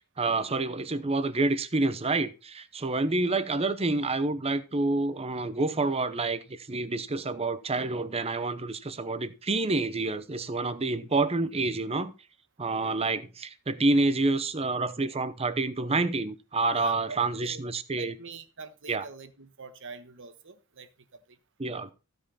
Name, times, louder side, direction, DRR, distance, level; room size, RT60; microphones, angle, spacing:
voice 1, 0.2-12.1 12.6-18.1 18.9-19.0 21.6-21.9, right 3 dB, 30° right, 0.8 m, -28 dB
voice 2, 16.8-17.6 17.9-21.4, right 4 dB, 60° right, 1.2 m, -45 dB
15.0 x 5.4 x 4.2 m
head